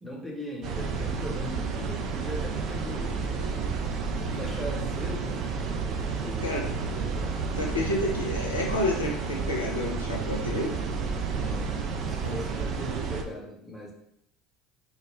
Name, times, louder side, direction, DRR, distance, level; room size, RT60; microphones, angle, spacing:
voice 1, 0.0-3.5 4.3-5.4 6.2-7.4 11.3-11.8 12.1-13.9, equal, 5° left, -3 dB, 0.8 m, -39 dB
sound 1, 0.6-13.2, right 5 dB, 50° right, 0.3 m, -31 dB
sound 2, 0.8-12.7, left 3 dB, 85° right, 0.7 m, -52 dB
voice 2, 4.0-4.5 6.4-6.7 7.6-10.8 12.2-12.4, left 1 dB, 85° left, -2 dB, 0.4 m, -30 dB
2.2 x 2.0 x 3.1 m, 0.77 s
figure-of-eight pair, 65°, 0 cm